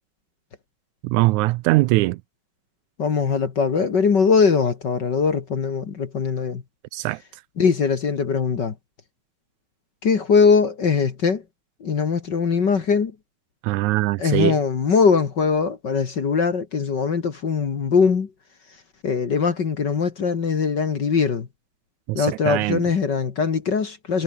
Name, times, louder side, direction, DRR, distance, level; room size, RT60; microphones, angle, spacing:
voice 1, 1.0-2.2 6.9-7.2 13.6-14.6 22.1-22.8, right 20 dB, 80° right, 1.9 m, -21 dB
voice 2, 3.0-6.6 7.6-8.7 10.0-11.4 11.8-13.1 14.2-18.3 19.0-21.5 22.1-24.2, left 5 dB, 40° left, 2.0 m, -21 dB
omnidirectional pair, 3.5 m